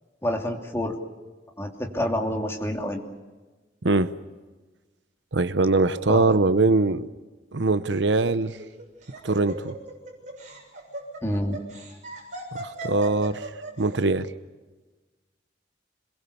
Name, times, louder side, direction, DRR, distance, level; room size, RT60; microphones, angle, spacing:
voice 1, 0.2-0.9 1.6-3.0 6.1-6.4 11.2-11.6, left 1 dB, 15° left, 1 dB, 2.8 m, -28 dB
voice 2, 5.3-7.1 7.5-8.6 9.2-9.7 12.6-13.5 13.8-14.3, right 3 dB, 85° right, 13 dB, 0.9 m, -22 dB
Laughter, 8.4-13.9, right 2 dB, 45° right, 6.9 m, -38 dB
26.5 x 22.0 x 7.0 m, 1.2 s
head